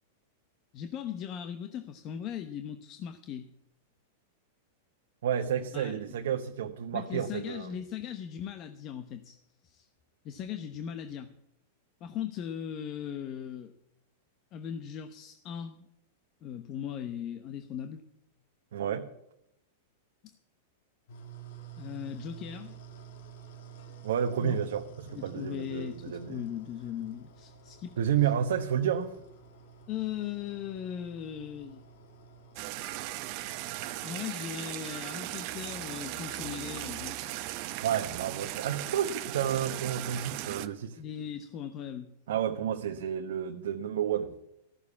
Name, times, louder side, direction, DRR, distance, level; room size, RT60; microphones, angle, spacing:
voice 1, 0.7-3.5 5.7-6.0 6.9-9.4 9.6-9.9 10.2-11.3 12.0-13.7 14.5-15.9 16.4-18.0 20.2-20.4 21.8-22.8 24.4-24.6 25.1-28.0 29.9-31.8 34.0-37.4 41.0-42.1, left 9 dB, 40° left, 0.9 m, -38 dB
voice 2, 5.2-7.7 18.7-19.1 24.0-26.4 28.0-29.1 37.8-41.0 42.3-44.3, right 9 dB, 80° right, 1.0 m, -30 dB
sound 1, 21.1-34.2, right 7 dB, 70° left, 1.7 m, -50 dB
sound 2, 32.6-40.7, right 15 dB, 50° right, 0.8 m, -38 dB
14.0 x 7.0 x 8.5 m
hypercardioid pair, 130°, 0 cm